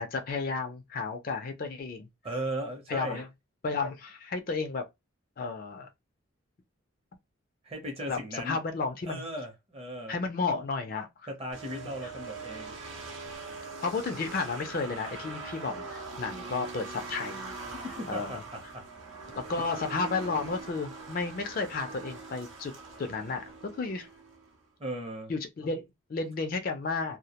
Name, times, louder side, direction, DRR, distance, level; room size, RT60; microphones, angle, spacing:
voice 1, 0.0-2.1 2.9-3.3 3.6-4.9 5.4-5.9 8.1-9.2 10.1-11.1 11.8-11.9 13.8-17.5 18.1-18.4 19.3-22.7 23.0-23.4 23.8-24.1 25.3-27.2, left 4 dB, 45° left, 0.4 m, -32 dB
voice 2, 2.2-3.2 7.6-8.6 9.1-10.2 11.3-12.8 17.6-18.8 24.8-25.3, right 1 dB, 30° right, 0.6 m, -37 dB
sound 1, 11.5-24.6, right 3 dB, 65° right, 0.6 m, -42 dB
2.1 x 2.0 x 2.8 m
head